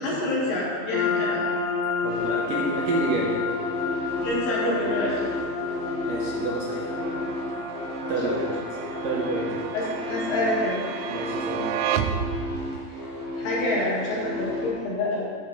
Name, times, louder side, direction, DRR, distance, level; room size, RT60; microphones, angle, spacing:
voice 1, 0.0-1.4 4.2-5.3 8.2-8.4 9.7-10.8 12.9-13.0 13.4-15.3, left 1 dB, 55° left, -5 dB, 3.5 m, -27 dB
sound 1, 0.9-12.2, left 5 dB, 85° left, 1.6 m, -31 dB
voice 2, 2.0-3.4 6.1-7.0 8.1-8.3 9.0-9.7 11.1-11.7, right 3 dB, 75° right, -4 dB, 2.0 m, -29 dB
sound 2, 2.1-14.7, left 1 dB, 45° right, 3.0 m, -33 dB
sound 3, 7.0-12.9, right 9 dB, 90° right, 3.0 m, -32 dB
13.5 x 5.8 x 4.3 m, 2.3 s
omnidirectional pair, 5.3 m